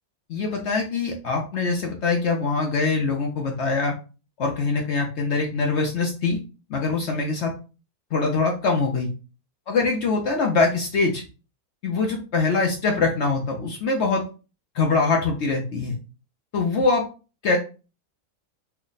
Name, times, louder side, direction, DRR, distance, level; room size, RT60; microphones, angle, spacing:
voice 1, 0.3-3.9 4.4-6.4 6.7-7.5 8.1-9.1 9.7-11.2 11.8-14.2 14.7-16.0 16.5-17.1 17.4-17.6, left 4 dB, 65° left, 1 dB, 0.7 m, -23 dB
3.2 x 2.0 x 3.8 m, 0.33 s
omnidirectional pair, 1.6 m